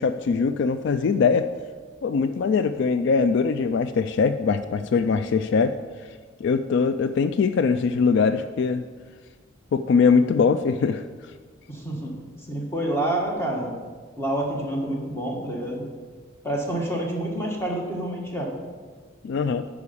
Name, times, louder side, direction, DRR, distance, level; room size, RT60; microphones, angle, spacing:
voice 1, 0.0-1.5 2.0-5.7 6.4-8.8 9.7-11.0 19.2-19.6, left 5 dB, 60° left, 11 dB, 0.3 m, -22 dB
voice 2, 11.7-12.1 12.5-13.7 14.2-15.8 16.4-18.5, right 1 dB, 15° left, -1 dB, 1.6 m, -28 dB
9.6 x 4.9 x 6.9 m, 1.5 s
head